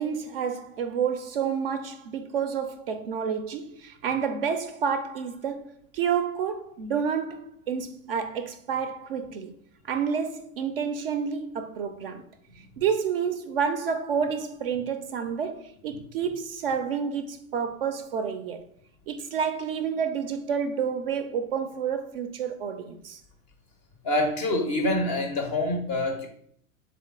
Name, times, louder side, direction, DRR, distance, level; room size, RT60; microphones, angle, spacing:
voice 1, 0.0-9.6 9.8-12.2 12.8-18.6 19.1-23.2, right 7 dB, 45° right, 0.4 m, -29 dB
voice 2, 24.0-26.3, left 1 dB, 20° left, 0.4 m, -26 dB
3.8 x 3.3 x 3.6 m
figure-of-eight pair, 95°, 42 cm